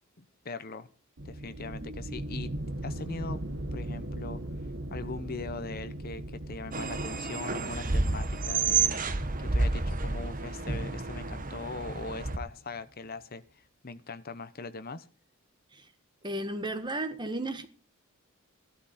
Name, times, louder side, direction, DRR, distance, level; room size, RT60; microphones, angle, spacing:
voice 1, 0.2-0.9 1.2-2.5 2.8-3.4 3.7-4.4 4.9-9.0 9.4-15.1, left 3 dB, 45° left, 1.0 m, -40 dB
sound 1, 1.2-12.6, right 1 dB, 60° right, 1.4 m, -40 dB
sound 2, 6.7-12.4, right 4 dB, 40° right, 1.2 m, -30 dB
voice 2, 16.2-17.7, right 1 dB, 20° right, 1.6 m, -34 dB
15.5 x 12.0 x 4.3 m
head